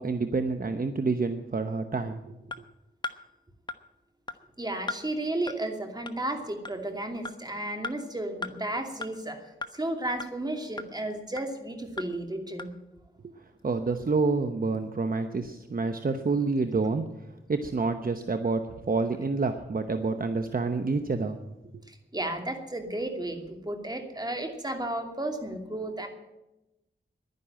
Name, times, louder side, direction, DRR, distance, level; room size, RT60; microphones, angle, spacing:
voice 1, 0.0-2.3 13.2-13.3 13.6-17.0 17.5-21.4, right 4 dB, 45° right, 7 dB, 1.0 m, -28 dB
sound 1, 2.5-2.6 3.0-3.2 3.7-3.8 4.3-4.4 4.9-5.0 5.5-5.6 6.1-6.2 6.6-6.8 7.2-7.4 7.8-7.9 8.4-8.5 9.0-9.1 9.6-9.7 10.2-10.3 10.8-10.9 11.4-11.5 12.0-12.1 12.6-12.7, left 3 dB, 25° left, 1.1 m, -35 dB
voice 2, 4.6-9.5 9.7-12.7 21.9-26.1, right 1 dB, 20° right, 4 dB, 2.7 m, -33 dB
11.5 x 10.5 x 8.8 m, 0.95 s
cardioid pair, 60°, 20 cm